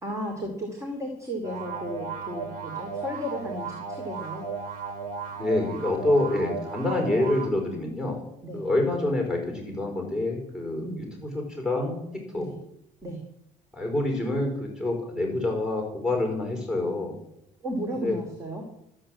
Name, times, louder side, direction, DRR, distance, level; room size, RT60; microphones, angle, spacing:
voice 1, 0.0-4.4 8.4-8.6 10.8-11.0 12.4-12.6 13.0-13.2 17.6-18.7, equal, 20° right, 2 dB, 2.6 m, -34 dB
sound 1, 1.4-7.5, right 5 dB, 65° right, 2.7 m, -35 dB
voice 2, 5.4-8.2 8.5-12.5 13.7-17.2 18.0-18.1, left 2 dB, 5° right, 2 dB, 4.3 m, -27 dB
13.5 x 7.9 x 7.6 m, 0.79 s
cardioid pair, 120°, 16 cm